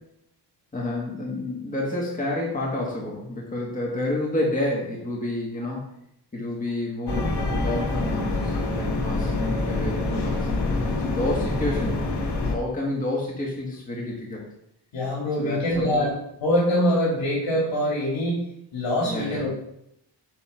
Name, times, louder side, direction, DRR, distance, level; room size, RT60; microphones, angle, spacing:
voice 1, 0.7-5.9 6.3-10.5 11.0-14.4 15.4-16.1 19.0-19.5, left 1 dB, 20° left, -3 dB, 1.7 m, -29 dB
sound 1, 7.1-12.5, left 2 dB, 60° left, 1.5 m, -26 dB
voice 2, 14.9-16.1 16.4-18.4 18.7-19.5, equal, 85° left, -5 dB, 3.1 m, -24 dB
9.4 x 3.7 x 5.8 m, 0.76 s
wide cardioid pair, 170°, 45 cm